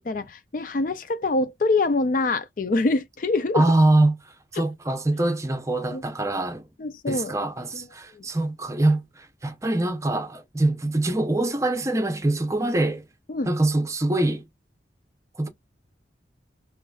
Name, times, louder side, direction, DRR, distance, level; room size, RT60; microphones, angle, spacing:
voice 1, 0.1-3.6 5.9-6.0 6.8-7.3 7.7-7.9 8.1-8.2 13.3-13.5, left 3 dB, 45° left, 0.4 m, -25 dB
voice 2, 3.5-4.2 4.5-6.7 7.1-13.0 13.5-14.4 15.4-15.5, right 2 dB, 15° right, 0.7 m, -23 dB
4.8 x 3.1 x 2.3 m
head